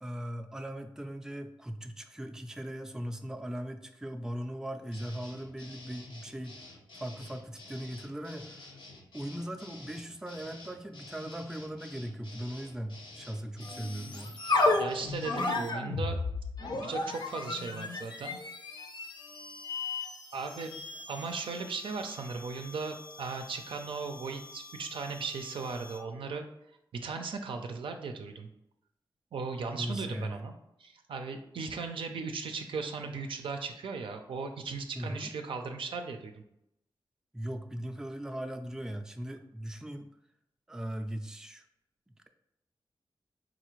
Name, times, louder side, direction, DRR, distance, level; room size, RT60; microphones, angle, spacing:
voice 1, 0.0-6.5 6.9-8.7 9.1-14.4 29.7-30.5 34.9-35.3 37.3-40.1 40.7-41.6, right 1 dB, 5° right, 5 dB, 0.3 m, -39 dB
sound 1, 4.9-15.4, left 2 dB, 80° left, 0.8 m, -50 dB
sound 2, 13.6-26.1, left 3 dB, 60° left, 0.5 m, -35 dB
voice 2, 14.8-16.2 16.7-18.4 20.3-20.8 21.1-26.5 26.9-28.5 29.3-30.5 30.8-36.4, right 4 dB, 85° right, 5 dB, 0.4 m, -37 dB
3.9 x 2.4 x 3.1 m, 0.81 s
cardioid pair, 65°, 9 cm